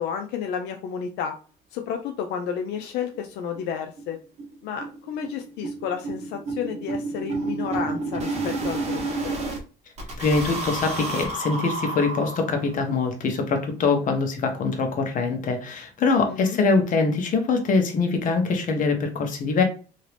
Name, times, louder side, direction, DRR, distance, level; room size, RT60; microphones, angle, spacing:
voice 1, 0.0-1.3 1.7-4.2 4.6-9.3 16.3-16.6, left 7 dB, 85° left, 4 dB, 0.5 m, -31 dB
sound 1, 2.7-2.8 3.1-3.2 3.6-3.7 4.0-4.1 4.4-9.6 10.0-12.8, right 2 dB, 40° right, 1.1 m, -30 dB
voice 2, 10.2-19.6, left 4 dB, 50° left, 4 dB, 0.9 m, -23 dB
2.9 x 2.8 x 3.2 m, 0.36 s
cardioid pair, 110°, 17 cm